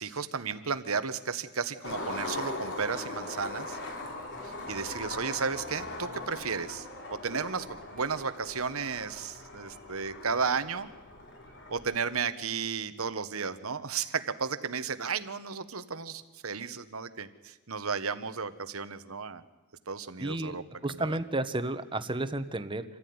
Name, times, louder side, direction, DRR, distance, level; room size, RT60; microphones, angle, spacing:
voice 1, 0.0-3.8 4.4-6.9 7.2-10.9 11.7-19.4 19.9-20.6 21.0-21.2, right 5 dB, 75° right, 11 dB, 1.3 m, -33 dB
Skateboard, 1.8-12.0, left 2 dB, 60° left, 3.5 m, -40 dB
voice 2, 20.2-22.8, right 2 dB, 25° right, 10 dB, 1.1 m, -32 dB
26.5 x 15.0 x 9.6 m, 1.2 s
head